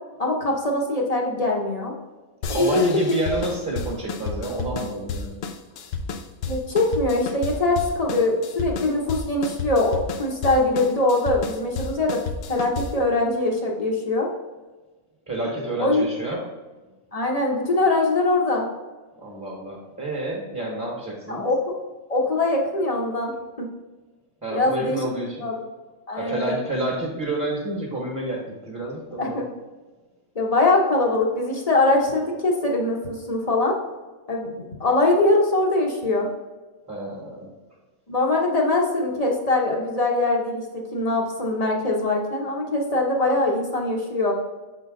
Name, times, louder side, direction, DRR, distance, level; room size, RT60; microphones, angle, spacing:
voice 1, 0.2-1.9 2.5-2.9 6.5-12.2 12.5-14.3 15.8-16.0 17.1-18.7 21.3-21.6 22.1-23.3 23.6-23.7 24.5-25.0 25.4-25.6 26.1-26.6 29.2-29.5 30.3-33.8 34.3-36.3 38.1-44.3, left 2 dB, 30° left, -1 dB, 0.9 m, -22 dB
sound 1, 2.4-13.1, left 4 dB, 65° left, 0.6 m, -32 dB
voice 2, 2.5-5.4 15.3-16.5 19.2-21.5 24.4-25.4 26.2-29.4 36.9-37.5, right 1 dB, 15° right, -3 dB, 1.1 m, -29 dB
6.7 x 3.9 x 3.7 m, 1.2 s
omnidirectional pair, 1.5 m